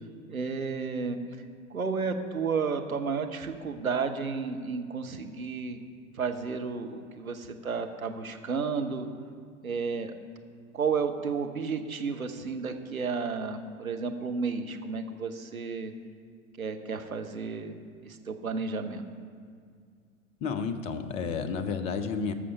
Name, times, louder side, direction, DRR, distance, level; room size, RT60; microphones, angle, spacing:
voice 1, 0.3-1.2 1.7-5.8 6.1-9.1 9.6-10.1 10.7-15.9 16.6-19.0, right 5 dB, 85° right, 6 dB, 1.0 m, -32 dB
voice 2, 20.4-22.3, left 5 dB, 15° left, 9 dB, 0.4 m, -31 dB
13.5 x 6.4 x 5.4 m, 2.1 s
figure-of-eight pair, 95°, 41 cm